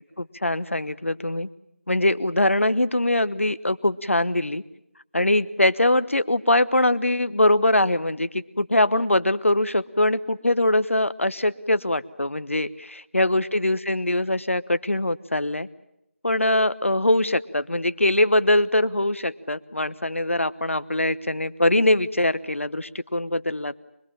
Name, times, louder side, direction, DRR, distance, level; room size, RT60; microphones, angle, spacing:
voice 1, 0.2-1.5 1.9-4.6 5.1-15.7 16.2-23.8, left 1 dB, 80° left, 14 dB, 1.1 m, -22 dB
25.0 x 20.5 x 8.8 m, 0.83 s
figure-of-eight pair, 170°, 7 cm